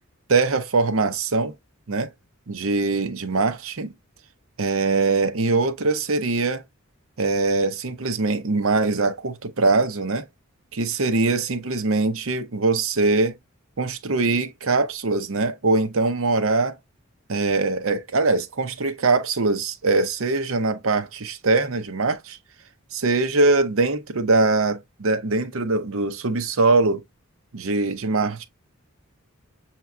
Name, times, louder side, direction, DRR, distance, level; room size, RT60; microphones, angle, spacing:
voice 1, 0.3-1.5 1.9-2.1 2.5-3.9 4.6-6.6 7.2-10.2 10.7-13.3 13.8-16.8 17.3-22.4 22.9-27.0 27.5-28.4, right 3 dB, 75° right, 0.8 m, -22 dB
6.8 x 2.9 x 2.3 m
head